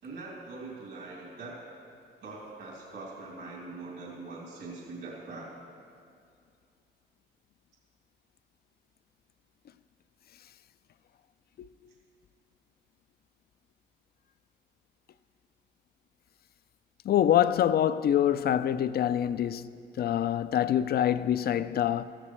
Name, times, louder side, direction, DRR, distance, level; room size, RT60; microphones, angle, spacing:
voice 1, 0.0-1.6 2.2-5.5, right 3 dB, 75° right, 3.2 m, -42 dB
voice 2, 17.1-19.7 20.0-22.0, left 10 dB, 50° left, 0.4 m, -25 dB
15.0 x 14.0 x 3.2 m
cardioid pair, 90°, 20 cm